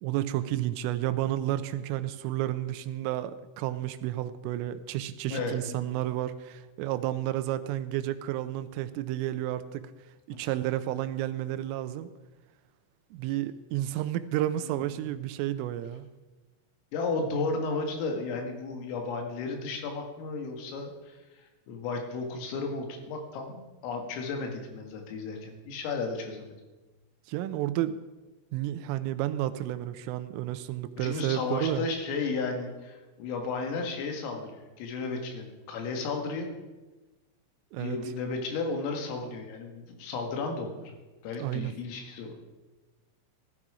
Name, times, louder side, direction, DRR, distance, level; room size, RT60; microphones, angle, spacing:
voice 1, 0.0-9.9 10.3-12.1 13.1-16.1 27.3-28.0 28.5-31.9 37.7-38.0 41.3-41.8, right 13 dB, 85° right, 12 dB, 3.2 m, -31 dB
voice 2, 5.3-5.8 10.3-10.4 14.6-14.7 16.9-26.6 31.0-36.5 37.8-40.9 41.2-42.4, left 3 dB, 85° left, 3 dB, 4.4 m, -34 dB
16.5 x 12.0 x 4.9 m, 1.2 s
omnidirectional pair, 5.8 m